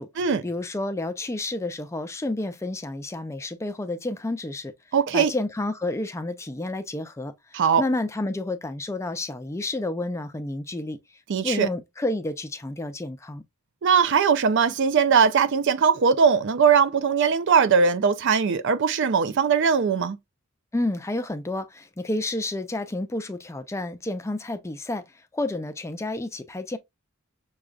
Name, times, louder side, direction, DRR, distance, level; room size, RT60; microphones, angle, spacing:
voice 1, 0.0-4.7 5.1-11.0 11.4-13.4 20.7-26.8, left 2 dB, 15° left, 0.4 m, -30 dB
voice 2, 4.9-5.3 7.5-7.8 11.3-11.7 13.8-20.2, right 6 dB, 55° right, 0.4 m, -20 dB
6.2 x 2.3 x 2.2 m
head